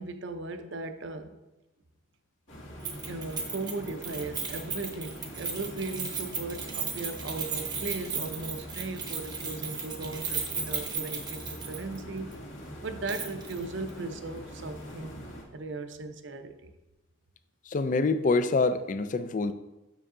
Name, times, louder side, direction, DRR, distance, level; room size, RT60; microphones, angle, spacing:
voice 1, 0.0-1.4 3.1-12.4 12.8-15.1 15.5-16.7, right 3 dB, 60° right, 8 dB, 0.6 m, -37 dB
sound 1, 2.5-15.4, equal, 70° left, 1.9 m, -43 dB
Keys jangling, 2.8-12.0 12.3-12.4 13.1-13.6 13.9-14.0, right 5 dB, 20° right, 0.8 m, -36 dB
voice 2, 17.7-19.5, left 3 dB, 40° left, 12 dB, 0.3 m, -26 dB
6.9 x 6.4 x 3.7 m, 1.0 s
head